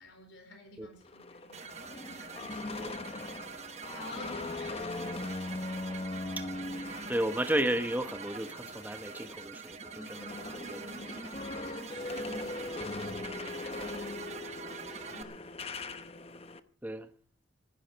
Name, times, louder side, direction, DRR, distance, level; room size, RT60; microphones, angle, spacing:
voice 1, 0.0-5.1 9.9-11.4 11.6-15.4, equal, 80° left, 4.3 m, -51 dB
sound 1, 1.0-9.4 9.7-16.6, left 2 dB, 30° left, 0.8 m, -40 dB
sound 2, 1.5-15.2, right 6 dB, 35° right, 1.0 m, -45 dB
voice 2, 7.1-10.2 10.5-10.9 16.8-17.1, right 1 dB, 10° right, 1.0 m, -33 dB
16.0 x 15.5 x 4.6 m
head